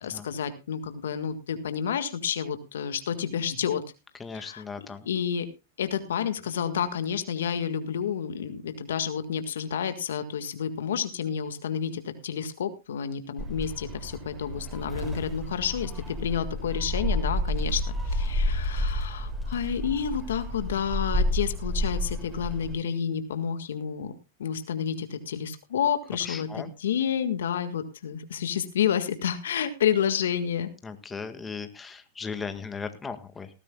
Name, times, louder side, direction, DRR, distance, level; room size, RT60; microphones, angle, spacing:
voice 1, 0.0-3.8 4.3-4.6 5.0-5.5 5.8-24.1 24.4-30.7, left 8 dB, 80° left, 9 dB, 1.7 m, -30 dB
voice 2, 4.2-5.1 26.2-26.7 30.8-33.5, left 5 dB, 15° left, 8 dB, 1.7 m, -37 dB
Gull seagull, 13.4-22.7, left 1 dB, 15° right, 7.2 m, -30 dB
19.0 x 14.0 x 2.3 m, 0.28 s
hypercardioid pair, 115°, 0 cm